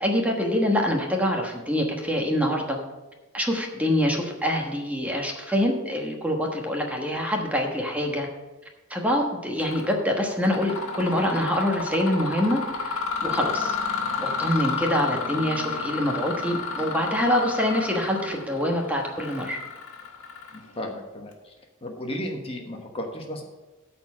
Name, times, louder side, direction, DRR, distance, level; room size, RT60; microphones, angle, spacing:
voice 1, 0.0-2.8 3.3-8.3 8.9-13.8 14.2-19.6, equal, 5° right, 1 dB, 1.2 m, -25 dB
Mechanisms, 9.6-9.9 10.3-20.9, left 4 dB, 65° left, 1.7 m, -31 dB
voice 2, 20.5-21.5 21.8-23.4, left 1 dB, 25° left, 2 dB, 1.1 m, -34 dB
13.0 x 4.4 x 7.2 m, 1.2 s
head